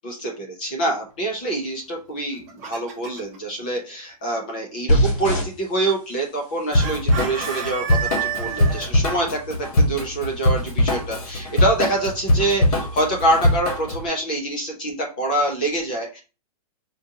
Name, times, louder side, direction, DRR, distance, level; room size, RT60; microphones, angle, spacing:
voice 1, 0.0-16.2, right 1 dB, 15° left, 0 dB, 0.3 m, -25 dB
Chicken rooster, 2.2-3.4 6.8-8.9, right 8 dB, 25° right, 0.7 m, -30 dB
sound 1, 4.9-13.6, equal, 50° left, 1.7 m, -30 dB
Drum kit / Drum, 6.7-14.0, left 1 dB, 65° left, 1.2 m, -22 dB
5.0 x 2.5 x 2.6 m, 0.32 s
hypercardioid pair, 180°, 20 cm